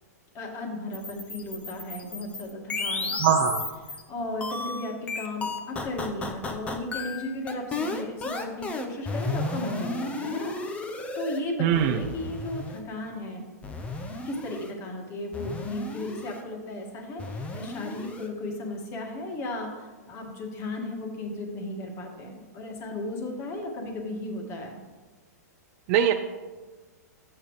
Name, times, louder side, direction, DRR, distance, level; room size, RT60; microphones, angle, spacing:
voice 1, 0.3-3.4 4.1-10.5 11.1-13.4 14.3-24.8, left 1 dB, 30° left, 1 dB, 1.9 m, -35 dB
sound 1, 0.9-4.0 4.4-11.4 11.7-12.8 13.6-14.7 15.3-16.4 17.2-18.3, left 3 dB, 15° left, 0.8 m, -33 dB
voice 2, 3.2-3.6 11.6-12.0 25.9-26.1, right 9 dB, 40° right, 5 dB, 0.5 m, -21 dB
12.5 x 8.5 x 3.2 m, 1.3 s
hypercardioid pair, 145°, 9 cm